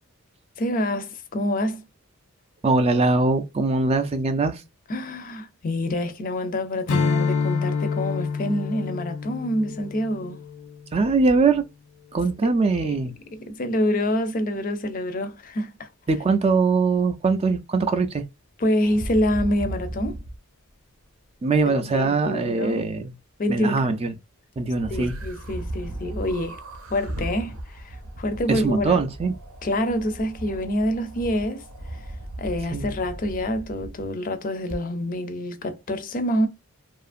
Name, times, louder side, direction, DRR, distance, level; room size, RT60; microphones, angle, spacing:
voice 1, 0.6-1.8 4.9-10.4 13.3-15.9 18.6-20.2 21.7-22.8 23.4-23.9 24.9-26.6 26.9-29.0 29.6-31.6 32.4-36.5, left 1 dB, 40° left, 0.5 m, -26 dB
voice 2, 2.6-4.6 10.9-11.6 12.1-13.1 16.1-18.2 21.4-23.1 23.5-24.1 24.6-25.1 28.5-29.3 32.7-32.9, right 3 dB, 25° right, 0.3 m, -22 dB
Strum, 6.9-11.6, left 5 dB, 80° left, 0.6 m, -27 dB
sound 1, 18.8-20.4 24.8-34.1 34.7-34.8, right 1 dB, 75° right, 0.7 m, -36 dB
2.8 x 2.4 x 2.4 m
head